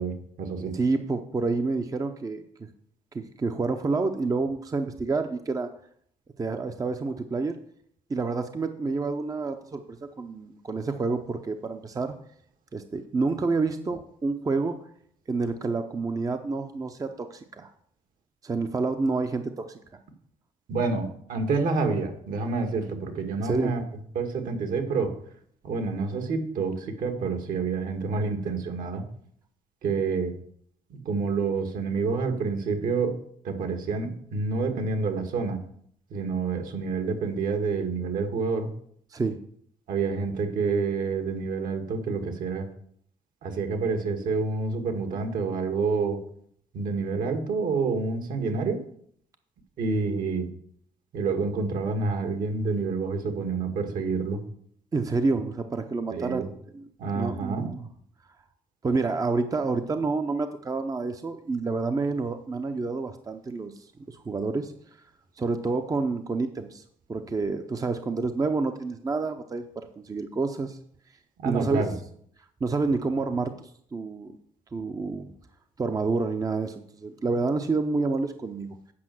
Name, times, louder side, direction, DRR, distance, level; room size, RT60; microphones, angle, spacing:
voice 1, 0.0-0.8 20.7-23.9 24.2-25.1 25.6-29.0 29.8-30.3 30.9-33.2 33.4-35.6 36.1-38.7 39.9-42.7 43.4-46.2 46.7-48.8 49.8-50.5 51.1-54.4 56.1-56.5 57.0-57.7 71.4-72.0, right 4 dB, 70° right, 6 dB, 1.9 m, -28 dB
voice 2, 0.7-2.7 3.1-5.7 6.4-7.6 8.1-12.2 12.7-14.8 15.3-17.7 18.4-19.8 23.4-23.7 39.1-39.4 54.9-56.9 57.1-57.9 58.8-64.7 65.4-66.8 67.1-70.8 71.4-71.8 72.6-74.3 74.7-75.3 75.8-78.8, right 3 dB, 25° right, 7 dB, 0.6 m, -28 dB
8.5 x 5.2 x 7.6 m, 0.65 s
cardioid pair, 110°, 15 cm